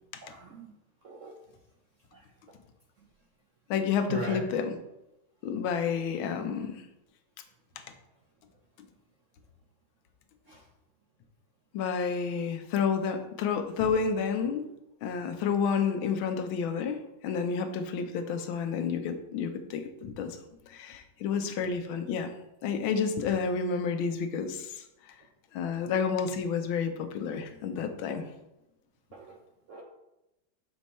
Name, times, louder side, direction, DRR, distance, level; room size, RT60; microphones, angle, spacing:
voice 1, 0.2-0.7 1.0-1.3 2.1-2.2 4.1-4.4 10.5-10.6 29.1-29.3 29.7-29.8, right 3 dB, 65° right, 0 dB, 0.7 m, -39 dB
voice 2, 3.7-4.8 5.4-6.8 11.7-14.7 15.0-20.4 20.7-22.3 22.6-24.8 25.5-28.2, left 6 dB, 90° left, 7 dB, 1.5 m, -30 dB
6.2 x 4.5 x 4.2 m, 0.91 s
omnidirectional pair, 2.1 m